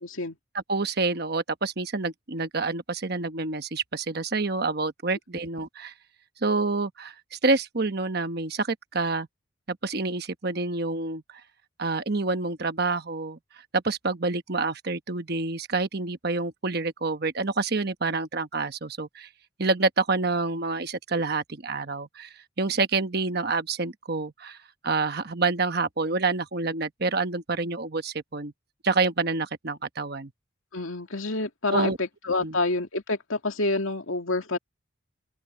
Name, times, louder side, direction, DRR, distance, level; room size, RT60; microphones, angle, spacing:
voice 1, 0.0-0.4 30.7-34.6, left 2 dB, 80° left, 2.4 m, -28 dB
voice 2, 0.5-5.9 6.4-9.3 9.7-11.2 11.8-13.4 13.7-19.3 19.6-24.6 24.8-28.5 28.8-30.3 31.7-32.0 32.4-32.6, right 3 dB, 50° right, 1.1 m, -27 dB
open air
head